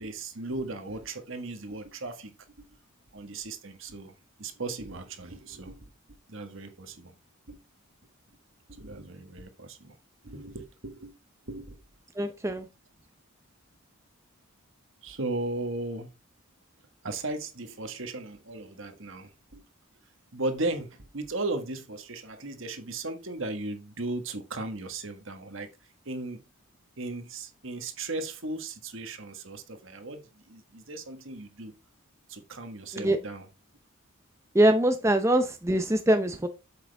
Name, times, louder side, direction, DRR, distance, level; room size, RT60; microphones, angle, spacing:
voice 1, 0.0-2.7 3.1-4.1 4.4-7.1 7.5-7.6 8.7-9.9 10.2-11.2 11.5-11.8 15.0-16.1 17.0-19.7 20.3-26.4 27.0-31.7 32.3-33.5 36.3-36.4, right 2 dB, 60° right, 1.6 m, -36 dB
voice 2, 12.2-12.7 32.9-33.2 34.5-36.5, right 1 dB, 10° right, 0.7 m, -23 dB
8.2 x 7.6 x 3.4 m
head